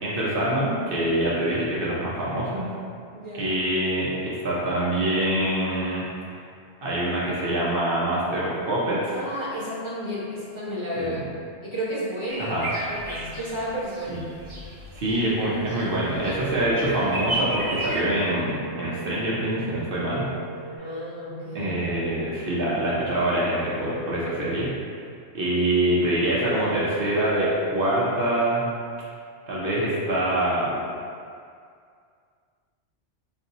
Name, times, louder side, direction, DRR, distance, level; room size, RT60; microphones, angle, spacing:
voice 1, 0.0-2.7 3.3-6.4 6.8-9.2 11.0-11.2 12.4-12.7 14.1-14.2 14.9-20.3 21.5-24.7 25.3-28.6 29.5-30.8, right 1 dB, 60° right, -7 dB, 0.8 m, -25 dB
voice 2, 3.1-3.6 9.1-11.2 11.6-12.6 12.9-14.3 20.8-21.8, equal, 30° left, -12 dB, 0.8 m, -32 dB
sound 1, 12.3-18.0, right 1 dB, 30° right, 0.8 m, -34 dB
sound 2, 15.1-20.8, right 4 dB, 90° right, 0.9 m, -38 dB
3.9 x 2.6 x 2.8 m, 2.3 s
omnidirectional pair, 1.1 m